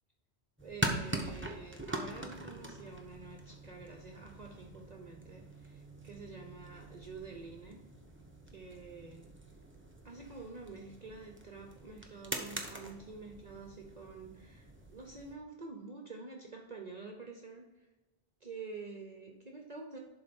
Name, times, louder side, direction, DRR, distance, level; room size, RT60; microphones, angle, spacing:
sound 1, 0.6-15.3, right 1 dB, 10° right, 0.9 m, -43 dB
voice 1, 0.6-7.8 8.5-9.3 10.0-17.7 18.4-20.0, right 3 dB, 40° right, 2 dB, 0.9 m, -48 dB
11.5 x 3.9 x 5.2 m, 1.1 s
omnidirectional pair, 1.1 m